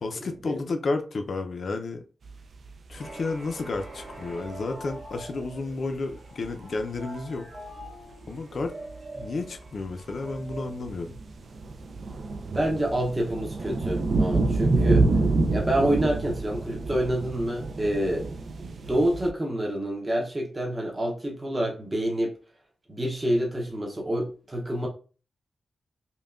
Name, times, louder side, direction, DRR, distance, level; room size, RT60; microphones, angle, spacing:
voice 1, 0.0-2.0 2.9-7.5 8.3-8.7 9.1-11.1, left 3 dB, 55° left, 0.5 m, -31 dB
sound 1, 2.3-2.4 2.6-3.1 3.5-5.5 6.1-6.2 6.4-6.5 6.8-7.0 7.5-8.3 8.6-19.3, right 3 dB, 60° right, 0.4 m, -28 dB
sound 2, 2.9-11.7, right 1 dB, 80° right, 1.6 m, -44 dB
voice 2, 12.5-15.1 15.5-18.3 18.8-22.3 22.9-24.9, right 1 dB, 20° right, 0.7 m, -27 dB
5.4 x 2.2 x 2.4 m
wide cardioid pair, 130°, 0 cm